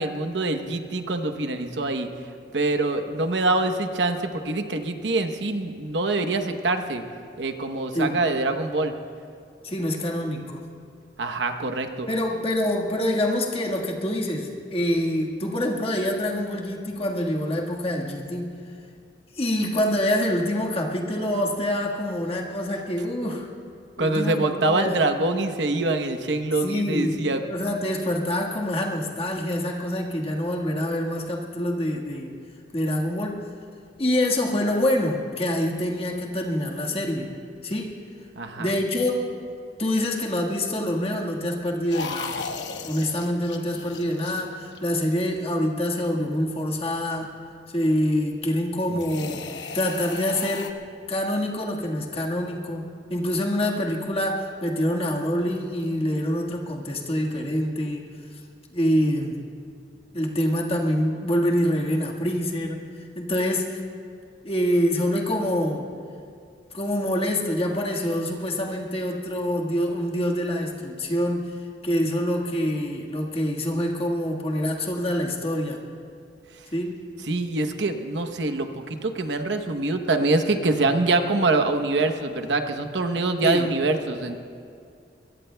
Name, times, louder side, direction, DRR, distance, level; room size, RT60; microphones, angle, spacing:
voice 1, 0.0-2.1 2.5-7.0 7.4-8.9 11.2-12.1 24.0-27.4 38.4-38.7 77.3-84.4, right 2 dB, 80° right, 6 dB, 1.0 m, -25 dB
voice 2, 9.6-10.6 12.1-18.5 19.4-23.5 24.0-25.1 26.6-27.2 27.5-32.3 32.7-33.4 34.0-37.3 37.6-38.0 38.6-39.3 39.8-42.4 42.8-47.3 47.7-49.5 49.7-50.8 51.1-58.0 58.7-59.4 60.1-63.8 64.4-65.9 66.7-71.6 71.8-75.8 76.7-76.9 83.4-83.7, left 1 dB, 35° left, -1 dB, 1.6 m, -26 dB
sound 1, 41.9-45.1 48.9-50.7, left 4 dB, 80° left, 1.0 m, -36 dB
23.0 x 22.5 x 2.3 m, 2.4 s
head